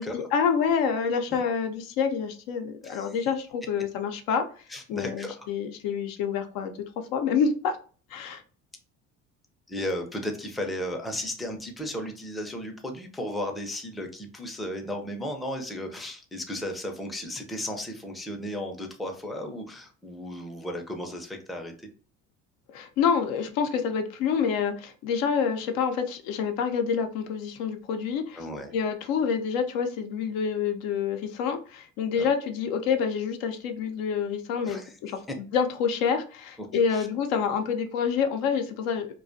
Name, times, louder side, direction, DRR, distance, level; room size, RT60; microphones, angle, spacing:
voice 1, 0.0-4.4 4.9-6.8 7.1-7.8 8.1-8.4 22.7-28.4 28.7-35.2 35.5-39.1, left 6 dB, 75° left, 6 dB, 0.5 m, -27 dB
voice 2, 2.8-3.2 4.7-5.5 9.7-21.9 28.4-28.7 32.2-32.3 34.6-35.0 35.3-35.4 36.6-37.1, left 1 dB, ahead, 3 dB, 0.4 m, -35 dB
2.4 x 2.2 x 2.5 m, 0.39 s
supercardioid pair, 80°, 35 cm